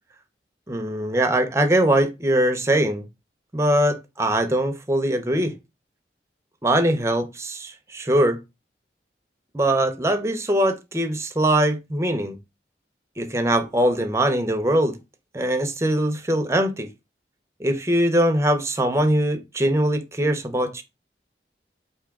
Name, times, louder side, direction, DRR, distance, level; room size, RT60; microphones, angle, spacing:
voice 1, 0.7-3.0 3.5-5.5 6.6-8.4 9.5-12.4 13.2-14.9 15.3-16.9 17.6-20.8, right 1 dB, 15° right, 0.5 m, -22 dB
4.8 x 2.7 x 3.5 m
head